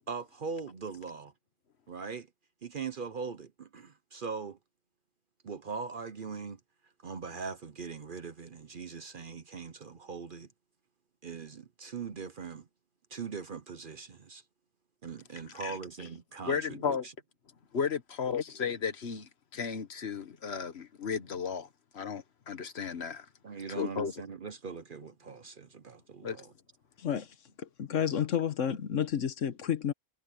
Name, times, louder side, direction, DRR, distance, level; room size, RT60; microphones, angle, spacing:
voice 1, 0.1-1.3 1.9-2.3 2.6-4.6 5.4-6.6 7.0-10.5 11.2-12.7 13.1-14.4 15.0-17.1 23.4-26.5, right 5 dB, 50° right, 0.8 m, -41 dB
voice 2, 16.4-17.1 17.7-21.7 21.9-23.3 23.7-24.2 26.2-26.5, left 6 dB, 55° left, 1.3 m, -34 dB
voice 3, 27.6-29.9, left 9 dB, 70° left, 1.3 m, -30 dB
omnidirectional pair, 1.3 m